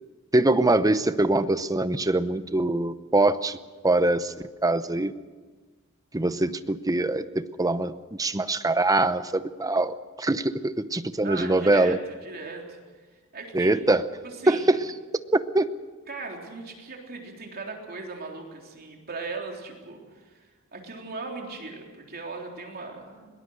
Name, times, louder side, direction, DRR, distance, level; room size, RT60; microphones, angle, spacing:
voice 1, 0.3-3.6 3.8-4.3 4.6-5.1 6.1-7.9 8.2-12.0 13.5-14.0 14.5-14.8 15.3-15.7, right 2 dB, 15° right, 12 dB, 0.7 m, -23 dB
voice 2, 11.2-12.8 13.3-13.8 14.2-14.7 16.1-23.3, right 3 dB, 45° right, 1 dB, 3.6 m, -38 dB
22.0 x 19.0 x 6.4 m, 1.4 s
head